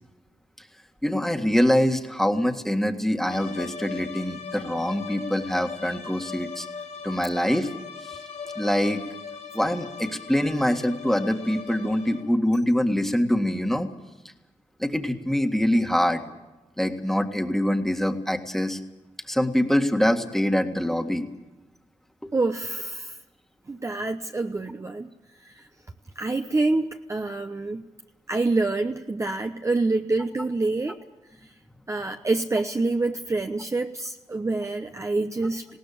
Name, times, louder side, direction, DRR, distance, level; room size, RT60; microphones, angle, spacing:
voice 1, 1.0-6.7 7.0-7.7 8.6-9.0 9.5-13.9 14.8-16.2 16.8-18.8 19.3-21.3 22.2-22.3, equal, 5° left, 5 dB, 1.8 m, -24 dB
sound 1, 3.2-12.4, left 6 dB, 80° left, 4.2 m, -39 dB
voice 2, 22.3-23.2 23.7-25.1 25.4-25.7 26.2-27.8 28.3-31.0 31.9-35.7, right 3 dB, 25° right, 5 dB, 0.9 m, -26 dB
20.5 x 17.5 x 8.5 m, 1.0 s
cardioid pair, 95°, 12 cm